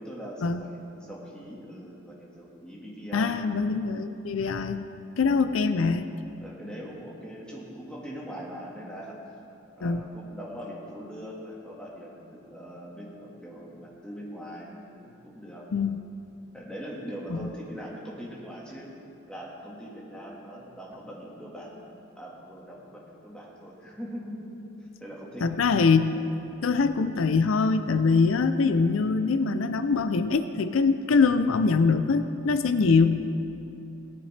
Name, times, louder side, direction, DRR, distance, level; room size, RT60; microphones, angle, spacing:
voice 1, 0.0-3.4 6.4-9.2 9.8-15.7 16.5-18.9 19.3-21.8 22.1-24.5 25.0-25.5, equal, 5° left, -5 dB, 1.7 m, -41 dB
voice 2, 3.1-4.9 5.2-6.1 9.8-10.0 15.7-16.0 17.3-17.5 25.4-26.2 26.6-33.3, left 4 dB, 90° left, 10 dB, 0.5 m, -23 dB
17.0 x 10.0 x 3.3 m, 2.7 s
head